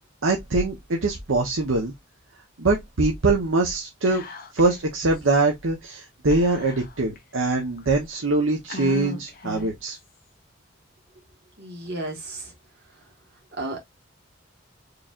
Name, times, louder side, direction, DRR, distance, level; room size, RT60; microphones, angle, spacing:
voice 1, 0.2-1.9 2.6-4.2 4.5-10.0, right 2 dB, 75° right, 0.9 m, -23 dB
Whispering, 4.1-4.8 5.1-5.2 6.3-7.2 7.8-7.9 8.7-9.9, left 2 dB, 45° left, 0.8 m, -37 dB
voice 2, 11.6-12.5 13.6-13.8, right 2 dB, 55° right, 1.9 m, -33 dB
4.8 x 3.2 x 2.4 m
head